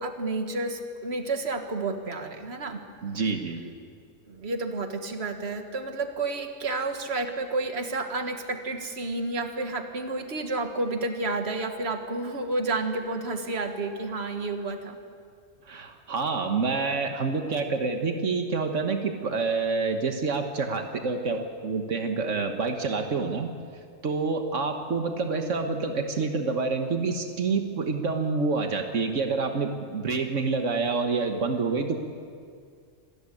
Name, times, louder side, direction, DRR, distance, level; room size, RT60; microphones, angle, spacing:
voice 1, 0.0-2.8 4.3-15.0, right 2 dB, 60° right, 5 dB, 1.9 m, -30 dB
voice 2, 3.0-3.7 15.7-23.5 24.0-32.0, right 4 dB, 80° right, 5 dB, 1.7 m, -27 dB
26.5 x 14.5 x 9.9 m, 2.2 s
omnidirectional pair, 1.3 m